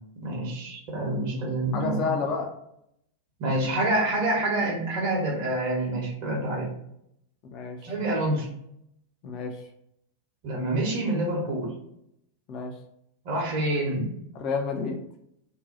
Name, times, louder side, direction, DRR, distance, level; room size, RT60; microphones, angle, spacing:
voice 1, 0.2-2.1 3.4-6.7 7.8-8.5 10.4-11.7 13.2-14.1, right 1 dB, 45° right, -3 dB, 0.9 m, -27 dB
voice 2, 1.7-2.5 7.5-7.9 9.2-9.6 12.5-12.7 14.3-15.0, left 5 dB, 35° left, 3 dB, 0.6 m, -30 dB
2.7 x 2.2 x 4.0 m, 0.76 s
figure-of-eight pair, 90°, 0 cm